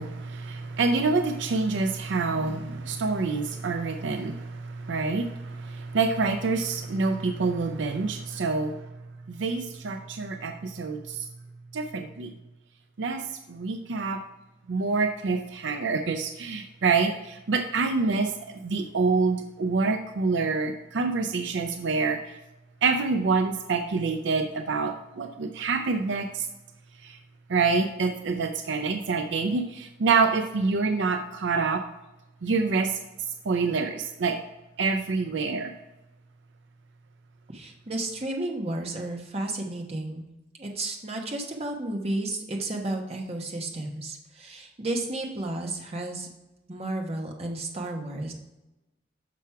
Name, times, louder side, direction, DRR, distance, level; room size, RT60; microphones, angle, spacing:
voice 1, 0.0-8.9 9.3-11.3 11.7-12.3 13.0-14.2 14.7-22.4 22.8-26.5 27.0-27.2 27.5-31.8 32.4-33.0 33.4-34.4 34.8-35.7, right 4 dB, 70° right, 6 dB, 0.5 m, -27 dB
voice 2, 37.5-40.2 40.6-46.3 46.7-48.3, right 2 dB, 35° right, 1 dB, 1.0 m, -32 dB
6.1 x 5.8 x 4.6 m, 0.97 s
head